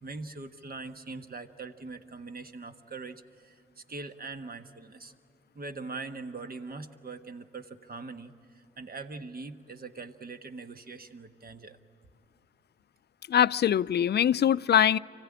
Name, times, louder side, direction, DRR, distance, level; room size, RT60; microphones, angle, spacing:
voice 1, 0.0-5.1 5.5-11.8, right 3 dB, 45° right, 8 dB, 1.4 m, -42 dB
voice 2, 13.3-15.0, left 9 dB, 55° left, 18 dB, 0.5 m, -23 dB
25.0 x 16.5 x 9.9 m, 2.8 s
supercardioid pair, 55°, 21 cm